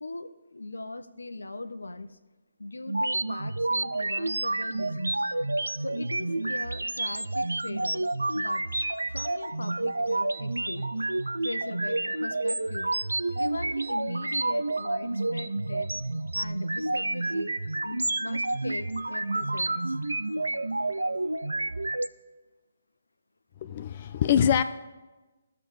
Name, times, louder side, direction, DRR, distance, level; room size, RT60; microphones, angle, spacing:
voice 1, 0.0-2.2 2.6-5.2 5.8-8.0 8.3-8.7 9.1-10.9 11.4-12.9 13.4-15.9 16.3-17.5 17.8-20.0, left 2 dB, 80° left, 10 dB, 0.6 m, -39 dB
sound 1, 2.9-22.1, right 2 dB, 85° right, 0.4 m, -29 dB
voice 2, 23.6-24.6, left 9 dB, 40° left, 9 dB, 0.3 m, -24 dB
19.5 x 6.9 x 3.2 m, 1.2 s
figure-of-eight pair, 140°, 0 cm